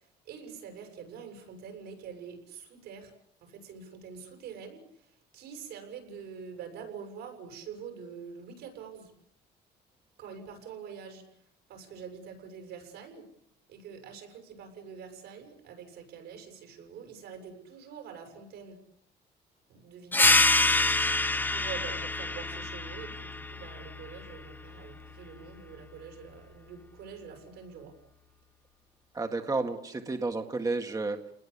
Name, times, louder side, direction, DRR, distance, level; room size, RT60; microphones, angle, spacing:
voice 1, 0.0-3.1 3.4-9.1 10.2-13.3 13.7-18.8 19.7-20.5 21.4-27.9, right 6 dB, 80° right, 6 dB, 7.7 m, -45 dB
sound 1, 20.1-25.3, left 2 dB, 10° left, 1.2 m, -27 dB
voice 2, 29.1-31.2, right 3 dB, 20° right, 5 dB, 1.9 m, -31 dB
29.5 x 20.0 x 8.5 m, 0.72 s
cardioid pair, 110°, 17 cm